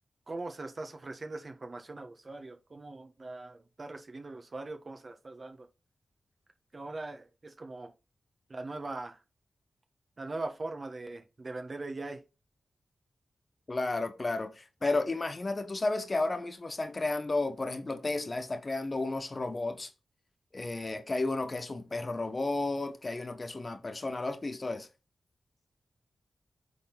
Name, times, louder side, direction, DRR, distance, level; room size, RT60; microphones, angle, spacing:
voice 1, 0.3-5.7 6.7-7.9 8.5-9.2 10.2-12.2, right 2 dB, 50° right, 1.3 m, -41 dB
voice 2, 13.7-19.9 20.5-24.9, left 2 dB, 40° left, 1.4 m, -32 dB
9.1 x 3.8 x 4.0 m
cardioid pair, 45°, 0 cm